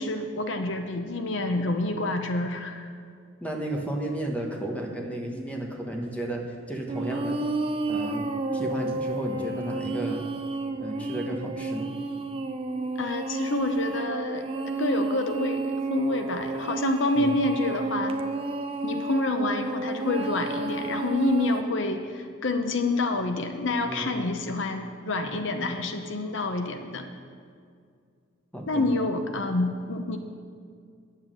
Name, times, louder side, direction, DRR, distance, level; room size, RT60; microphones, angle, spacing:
voice 1, 0.0-2.9 13.0-18.2 18.8-27.0 28.7-30.2, left 2 dB, 60° left, 6 dB, 0.7 m, -28 dB
voice 2, 3.4-6.4 6.7-7.4 7.9-8.3 8.5-10.2 10.8-11.9 17.2-17.4 23.9-24.2 28.5-28.9, right 1 dB, 5° left, 0 dB, 1.3 m, -33 dB
sound 1, 6.9-21.6, right 3 dB, 25° right, 0.5 m, -31 dB
10.5 x 7.5 x 7.6 m, 2.2 s
head